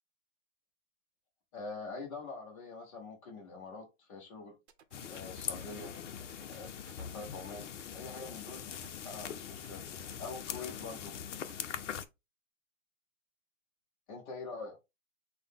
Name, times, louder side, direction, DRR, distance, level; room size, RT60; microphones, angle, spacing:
voice 1, 1.5-4.6 5.1-5.9 6.5-8.7 9.0-11.1 14.1-14.8, left 4 dB, 25° left, 0.7 m, -45 dB
sound 1, 4.7-12.0, right 8 dB, 55° right, 0.8 m, -60 dB
sound 2, 4.9-12.0, left 8 dB, 65° left, 0.7 m, -42 dB
5.9 x 2.2 x 3.5 m
hypercardioid pair, 155°, 40 cm